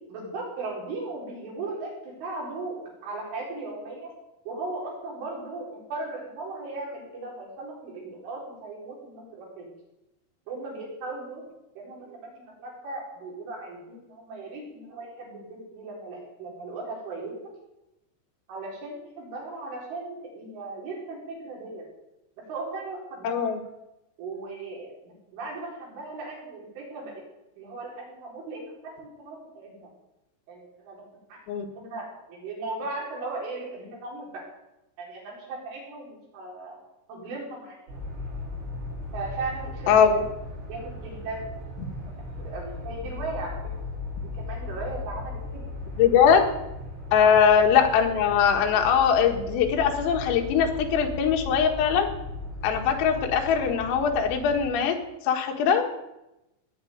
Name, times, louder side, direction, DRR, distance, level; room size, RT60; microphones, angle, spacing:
voice 1, 0.1-4.1 4.5-9.7 10.5-11.4 11.8-17.5 18.5-21.9 22.5-23.5 24.2-27.2 27.6-29.9 30.5-31.0 31.3-31.4 31.8-34.5 35.0-36.8 37.1-37.8 39.1-40.0 40.7-41.7 42.4-43.6 44.4-45.7 47.2-47.5, right 3 dB, 65° right, -3 dB, 7.0 m, -37 dB
voice 2, 23.2-23.6 31.5-31.7 39.9-40.2 46.0-46.4 47.1-52.1 52.6-55.0 55.2-55.9, left 7 dB, 80° left, 3 dB, 4.3 m, -21 dB
sound 1, 37.9-54.7, left 2 dB, 85° right, 7.6 m, -37 dB
18.5 x 7.1 x 9.4 m, 0.92 s
omnidirectional pair, 5.9 m